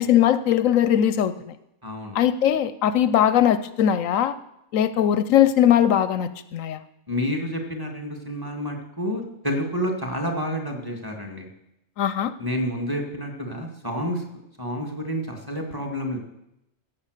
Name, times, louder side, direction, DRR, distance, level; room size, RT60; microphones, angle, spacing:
voice 1, 0.0-1.6 2.1-4.3 4.7-6.8 12.0-12.3, left 10 dB, 70° left, 14 dB, 0.9 m, -20 dB
voice 2, 1.8-2.2 7.1-11.5 12.4-14.2 14.6-16.2, equal, 15° right, 1 dB, 2.1 m, -29 dB
16.0 x 7.4 x 6.6 m, 0.85 s
omnidirectional pair, 1.5 m